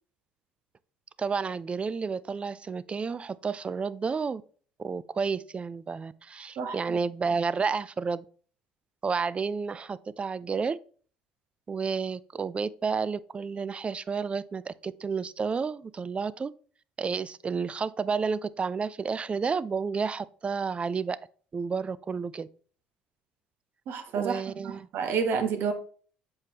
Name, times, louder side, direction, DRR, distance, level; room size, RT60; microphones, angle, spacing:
voice 1, 1.2-4.4 4.8-8.2 9.0-10.8 11.7-16.5 17.0-21.2 21.5-22.5 24.2-24.9, right 5 dB, 30° right, 0.4 m, -31 dB
voice 2, 6.6-7.0 23.9-25.7, right 6 dB, 65° right, 1.2 m, -30 dB
7.4 x 4.7 x 2.8 m
supercardioid pair, 70°, 4 cm